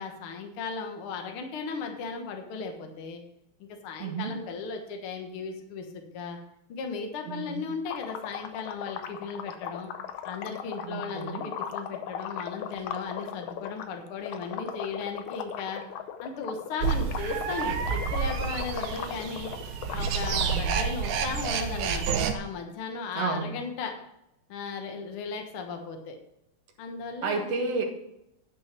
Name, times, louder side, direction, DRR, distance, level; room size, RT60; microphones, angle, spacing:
voice 1, 0.0-3.2 3.6-6.4 6.7-9.9 10.2-15.8 16.2-19.5 19.9-23.9 24.5-26.2 26.8-27.5, left 5 dB, 55° left, 4 dB, 1.9 m, -36 dB
voice 2, 4.0-4.3 7.3-7.6 10.8-11.5 20.3-20.7 23.1-23.6 27.2-27.8, right 4 dB, 60° right, 2 dB, 2.5 m, -31 dB
sound 1, 7.9-13.9 14.2-20.8, left 9 dB, 75° left, 2.1 m, -37 dB
sound 2, 16.8-22.3, right 6 dB, 90° right, 2.5 m, -29 dB
11.0 x 6.1 x 5.9 m, 0.82 s
omnidirectional pair, 3.4 m